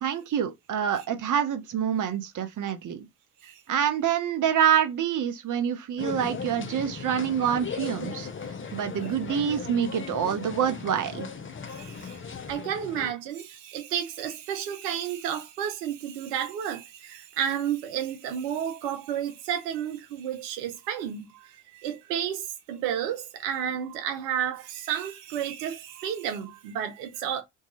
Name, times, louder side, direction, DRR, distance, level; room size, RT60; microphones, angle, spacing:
voice 1, 0.0-3.1 3.7-8.3 8.7-11.3, right 9 dB, 40° right, 0.8 m, -26 dB
sound 1, 6.0-13.1, left 6 dB, 25° left, 0.6 m, -37 dB
voice 2, 11.7-12.2 12.5-27.4, right 9 dB, 85° right, 0.6 m, -31 dB
2.7 x 2.3 x 2.8 m
hypercardioid pair, 45°, 47 cm